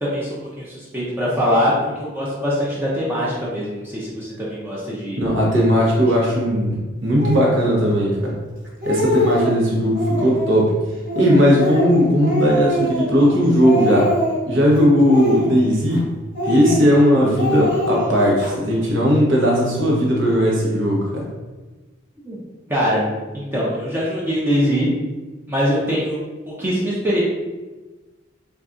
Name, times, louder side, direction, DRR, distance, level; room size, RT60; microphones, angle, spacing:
voice 1, 0.0-5.2 5.9-6.4 22.2-22.4 22.7-23.1 23.3-24.9 25.5-26.2 26.5-27.2, equal, 10° right, -7 dB, 0.5 m, -23 dB
voice 2, 5.2-8.4 8.8-10.7 11.1-14.1 14.5-16.1 16.4-21.3, equal, 65° right, -3 dB, 0.8 m, -17 dB
Speech, 7.2-7.5 8.2-8.3 8.6-9.5 9.9-10.5 11.1-13.3 13.6-14.6 15.0-16.0 16.3-17.0 17.3-18.5, equal, 45° right, 1.2 m, -23 dB
3.9 x 2.3 x 2.4 m, 1.2 s
head